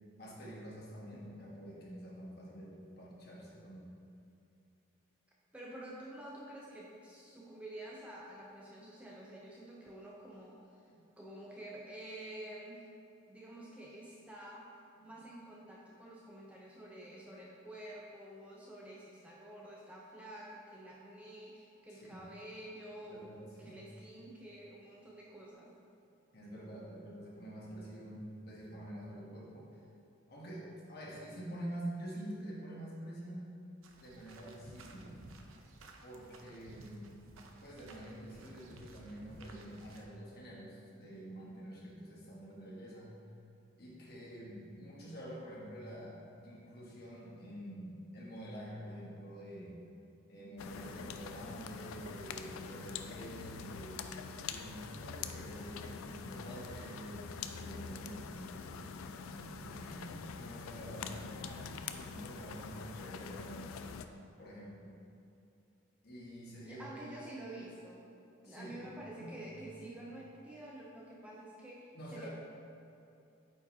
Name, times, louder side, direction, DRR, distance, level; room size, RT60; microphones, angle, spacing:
voice 1, 0.2-4.0 10.9-11.0 15.0-15.2 21.9-22.2 23.1-23.9 26.3-29.8 30.3-33.5 34.0-35.2 36.0-37.1 37.6-43.1 43.8-46.2 46.4-49.8 50.3-54.1 54.5-57.2 57.5-61.7 62.0-63.8 64.4-64.9 66.0-66.9 68.4-68.8 69.2-69.8 71.9-72.3, right 1 dB, 50° left, -4 dB, 1.2 m, -47 dB
voice 2, 5.5-10.9 11.2-12.8 13.3-25.7 66.6-68.1 68.4-72.3, right 1 dB, 5° right, -4 dB, 0.5 m, -49 dB
sound 1, 33.8-40.0, right 2 dB, 85° right, 0.6 m, -55 dB
sound 2, 50.6-64.1, left 5 dB, 90° left, 0.4 m, -45 dB
8.5 x 5.0 x 2.7 m, 2.7 s
head